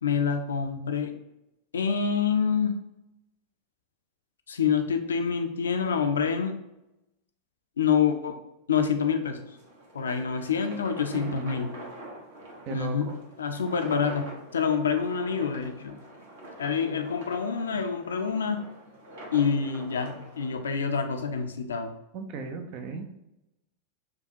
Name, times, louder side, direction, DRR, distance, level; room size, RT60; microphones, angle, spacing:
voice 1, 0.0-1.2 1.7-2.7 4.5-6.5 7.8-8.4 8.7-9.4 9.9-11.7 12.7-13.1 13.4-14.3 14.5-16.0 16.6-18.6 19.3-21.9, left 6 dB, 70° left, 6 dB, 0.4 m, -27 dB
sound 1, 9.3-20.5, right 1 dB, 55° right, 1.1 m, -45 dB
voice 2, 11.1-11.5 12.7-13.2 22.1-23.2, right 4 dB, 40° right, 6 dB, 0.5 m, -37 dB
5.0 x 2.3 x 2.7 m, 0.90 s
figure-of-eight pair, 90°, 0 cm